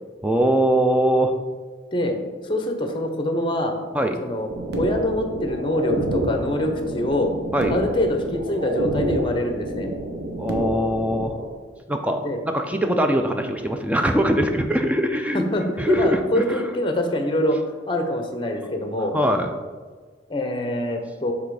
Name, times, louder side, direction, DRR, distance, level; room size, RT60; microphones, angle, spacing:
voice 1, 0.2-1.3 3.9-4.2 7.5-7.8 10.4-11.3 11.9-15.4 15.8-16.6 19.1-19.5, equal, 5° right, 5 dB, 0.4 m, -21 dB
voice 2, 2.5-3.8 4.2-4.5 4.8-7.3 7.7-9.9 12.2-12.4 15.3-17.6 17.9-19.1 20.3-21.3, left 1 dB, 25° left, 5 dB, 0.7 m, -24 dB
sound 1, 4.5-11.5, right 1 dB, 55° right, 0.8 m, -28 dB
7.2 x 3.5 x 4.8 m, 1.5 s
head